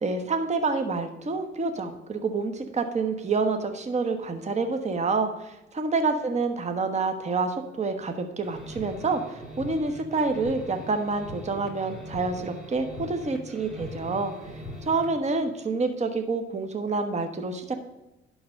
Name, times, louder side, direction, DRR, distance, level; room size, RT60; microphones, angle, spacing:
voice 1, 0.0-14.3 14.9-17.7, right 3 dB, 35° right, 6 dB, 1.2 m, -28 dB
sound 1, 8.4-15.2, left 1 dB, ahead, 3.0 m, -41 dB
11.5 x 3.9 x 7.4 m, 0.98 s
cardioid pair, 90°, 20 cm